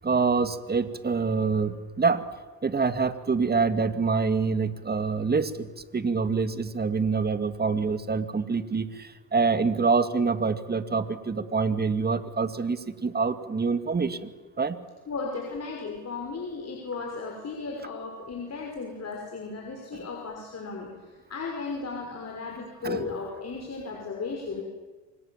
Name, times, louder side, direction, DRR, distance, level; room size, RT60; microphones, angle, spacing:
voice 1, 0.0-2.2 2.6-14.3 14.6-14.8 22.8-23.1, right 4 dB, 20° right, 10 dB, 2.2 m, -26 dB
voice 2, 15.1-20.9 21.3-24.6, left 4 dB, 35° left, 0 dB, 5.9 m, -35 dB
28.5 x 25.0 x 7.4 m, 1.3 s
supercardioid pair, 90°, 47 cm